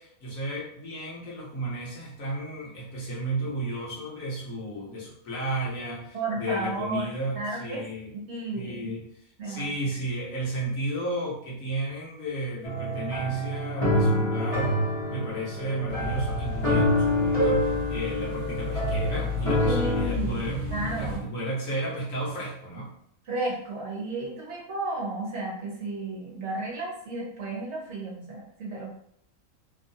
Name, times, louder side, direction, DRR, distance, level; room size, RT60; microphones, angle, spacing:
voice 1, 0.0-8.1 8.5-14.7 15.1-20.6 21.0-22.9, right 1 dB, 65° left, -5 dB, 1.3 m, -33 dB
voice 2, 6.1-7.1 7.4-7.8 8.3-8.9 9.4-9.7 19.6-21.2 23.3-28.9, right 2 dB, 60° right, -3 dB, 0.9 m, -33 dB
sound 1, 12.6-20.0, left 1 dB, 30° left, 0.8 m, -26 dB
sound 2, 15.9-21.2, left 3 dB, 20° right, 0.9 m, -33 dB
3.0 x 2.4 x 2.7 m, 0.70 s
omnidirectional pair, 1.5 m